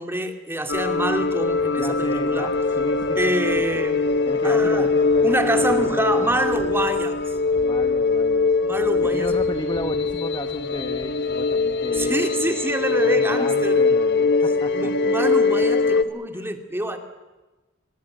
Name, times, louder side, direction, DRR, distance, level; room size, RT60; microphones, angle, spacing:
voice 1, 0.0-2.5 3.2-4.1 4.4-4.9 5.2-7.4 8.6-9.4 11.9-13.8 14.7-17.0, right 1 dB, 10° right, 6 dB, 2.5 m, -26 dB
sound 1, 0.7-16.0, left 4 dB, 60° left, 1.3 m, -22 dB
sound 2, 0.7-12.2, right 1 dB, 85° right, 3.4 m, -47 dB
voice 2, 1.8-3.2 4.1-6.4 7.5-8.5 9.1-12.5 13.0-14.9 15.2-15.5 16.3-16.5, left 1 dB, 20° left, 7 dB, 1.3 m, -34 dB
26.0 x 21.5 x 7.8 m, 1.2 s
head